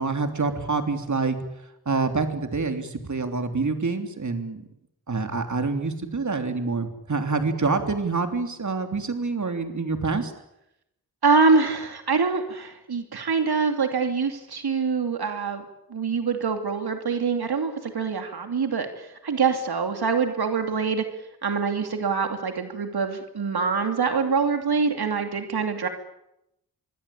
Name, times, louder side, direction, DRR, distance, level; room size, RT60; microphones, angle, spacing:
voice 1, 0.0-1.4 1.8-4.6 5.1-10.3, right 4 dB, 50° right, 6 dB, 3.4 m, -26 dB
voice 2, 11.2-15.6 15.9-21.0 21.4-25.9, right 5 dB, 85° right, 6 dB, 2.9 m, -24 dB
26.5 x 23.5 x 8.7 m, 0.84 s
wide cardioid pair, 95°, 37 cm